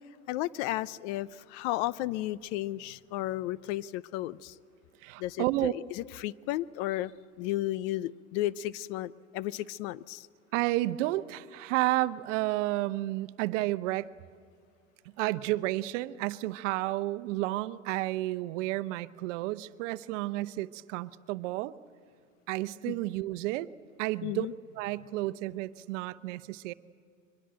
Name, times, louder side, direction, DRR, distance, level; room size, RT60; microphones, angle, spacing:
voice 1, 0.3-4.6 5.2-7.1 7.4-10.3 22.9-23.0 24.2-24.5, left 15 dB, 55° left, 20 dB, 0.7 m, -33 dB
voice 2, 5.0-5.7 10.5-14.1 15.2-21.8 22.5-23.7 24.0-24.5 24.8-26.7, right 17 dB, 60° right, 13 dB, 0.9 m, -31 dB
23.5 x 21.5 x 7.7 m, 2.4 s
hypercardioid pair, 90°, 41 cm